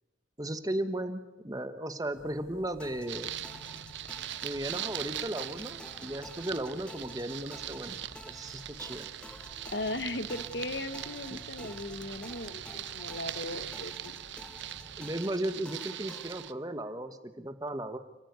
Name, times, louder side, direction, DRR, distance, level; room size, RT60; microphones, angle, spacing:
voice 1, 0.4-3.3 4.4-8.0 8.3-9.1 11.3-11.4 15.0-18.0, right 1 dB, 20° right, 9 dB, 1.3 m, -35 dB
sound 1, 2.1-15.1, equal, 90° left, 4.7 m, -54 dB
sound 2, 2.8-16.5, left 1 dB, 5° left, 1.1 m, -51 dB
sound 3, 3.1-16.5, right 12 dB, 65° right, 0.9 m, -41 dB
voice 2, 9.7-14.1, left 1 dB, 60° left, 11 dB, 1.5 m, -37 dB
29.5 x 15.0 x 9.6 m, 1.1 s
head